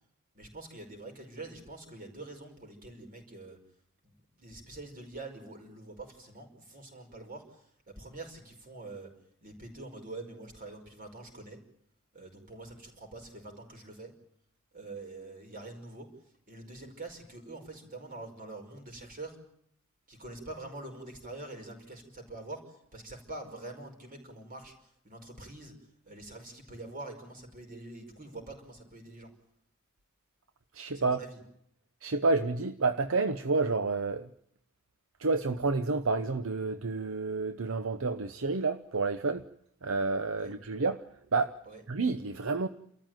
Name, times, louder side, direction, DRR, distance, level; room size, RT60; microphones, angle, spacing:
voice 1, 0.3-3.6 4.0-9.1 9.4-11.6 12.1-14.1 14.7-19.4 20.1-25.7 26.1-29.3 30.9-31.4 40.3-40.5 41.7-41.8, right 2 dB, 40° right, 5.2 m, -45 dB
voice 2, 30.7-31.2 32.0-34.3 35.2-39.4 39.8-41.0 41.3-41.6 41.9-42.7, right 3 dB, 65° right, 0.8 m, -29 dB
29.5 x 14.0 x 9.1 m
head